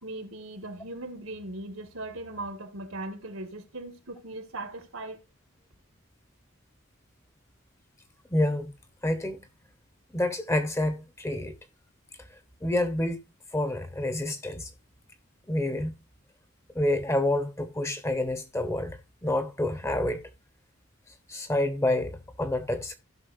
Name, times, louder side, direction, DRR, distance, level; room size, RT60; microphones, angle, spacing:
voice 1, 0.0-5.2, right 2 dB, 80° right, 2.2 m, -39 dB
voice 2, 8.3-8.7 9.0-9.4 10.1-11.5 12.6-13.2 13.5-14.7 15.5-15.9 16.7-20.2 21.3-23.0, left 1 dB, 15° left, 1.1 m, -28 dB
16.0 x 6.0 x 2.7 m
head